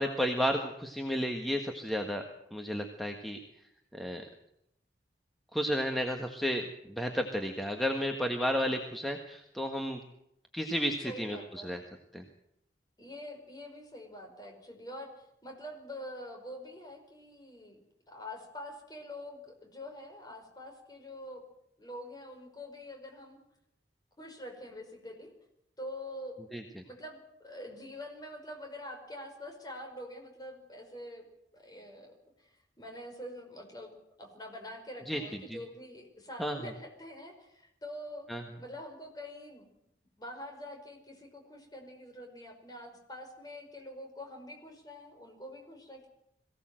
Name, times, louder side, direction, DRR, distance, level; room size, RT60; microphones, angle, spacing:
voice 1, 0.0-2.2 2.5-3.4 3.9-4.3 5.5-10.0 10.5-11.8 12.1-12.2 26.5-26.8 35.1-35.2 35.5-35.6 36.4-36.6 38.3-38.4, equal, ahead, 3 dB, 1.5 m, -32 dB
voice 2, 11.0-11.7 13.0-17.8 18.1-21.4 21.8-23.4 24.2-25.3 25.8-26.4 26.8-31.3 31.5-32.1 32.4-32.5 32.8-38.3 38.6-39.6 40.2-46.1, left 1 dB, 20° left, 3 dB, 5.1 m, -45 dB
22.5 x 17.0 x 7.7 m, 0.79 s
head